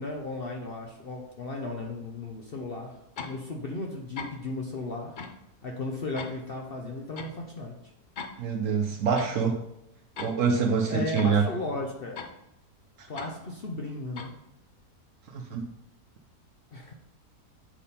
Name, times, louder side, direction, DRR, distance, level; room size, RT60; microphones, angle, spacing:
voice 1, 0.0-5.2 5.6-7.7 10.9-12.2 13.1-14.4 16.7-16.9, left 2 dB, 50° left, 1 dB, 0.7 m, -35 dB
sound 1, 3.2-3.4 4.2-4.4 5.2-5.4 6.2-6.3 7.2-7.3 8.2-8.4 9.2-9.3 10.2-10.3 11.2-11.3 12.2-12.3 13.2-13.3 14.2-14.3, left 5 dB, 75° left, 0.4 m, -38 dB
voice 2, 8.4-9.6 10.2-11.4 13.0-13.1 15.3-15.7, right 5 dB, 65° right, 4 dB, 0.9 m, -26 dB
8.3 x 3.6 x 4.2 m, 0.83 s
omnidirectional pair, 1.7 m